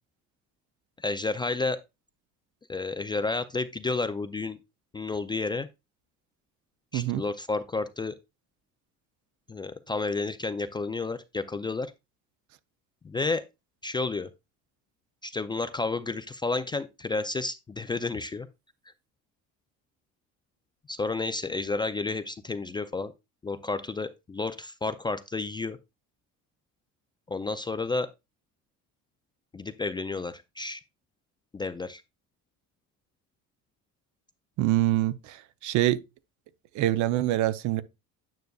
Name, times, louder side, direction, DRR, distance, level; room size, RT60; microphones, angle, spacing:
voice 1, 1.0-1.8 2.7-4.6 4.9-5.7 6.9-8.2 9.5-11.9 13.0-13.4 13.8-14.3 15.2-18.5 20.9-23.1 23.4-25.8 27.3-28.1 29.5-30.8 31.5-32.0, left 3 dB, 15° left, 0.3 m, -31 dB
voice 2, 34.6-36.0 36.7-37.8, right 14 dB, 60° right, 0.6 m, -25 dB
9.3 x 6.4 x 2.3 m
cardioid pair, 135°, 33 cm